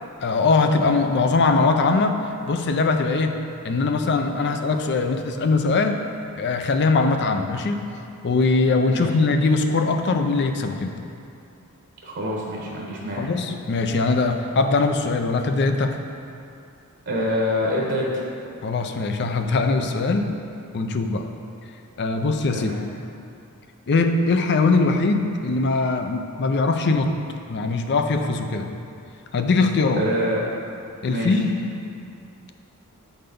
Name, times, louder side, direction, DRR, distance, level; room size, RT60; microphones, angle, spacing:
voice 1, 0.2-2.1 2.5-3.3 3.6-6.0 6.4-7.8 8.2-10.9 13.2-15.9 18.6-20.3 20.7-21.3 22.0-22.7 23.9-27.2 27.5-28.7 29.3-30.0 31.0-31.6, left 3 dB, 50° left, 6 dB, 0.5 m, -21 dB
voice 2, 12.0-13.3 17.1-18.2 22.5-22.8 30.0-30.4 31.0-31.4, left 1 dB, 55° right, -3 dB, 1.0 m, -26 dB
7.6 x 4.0 x 5.2 m, 2.5 s
head